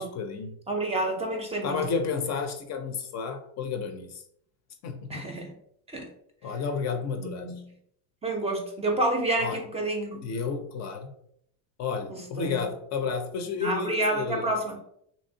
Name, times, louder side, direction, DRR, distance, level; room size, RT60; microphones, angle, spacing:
voice 1, 0.0-0.6 1.6-4.2 4.8-5.3 6.4-7.5 9.4-9.6 10.1-11.1 11.8-14.5, left 5 dB, 45° left, 6 dB, 0.5 m, -31 dB
voice 2, 0.7-1.9 5.1-5.5 5.9-6.1 7.2-7.6 8.2-10.2 12.1-12.6 13.6-14.8, right 1 dB, 15° right, 2 dB, 0.5 m, -29 dB
3.0 x 2.7 x 2.7 m, 0.69 s
supercardioid pair, 120°, 38 cm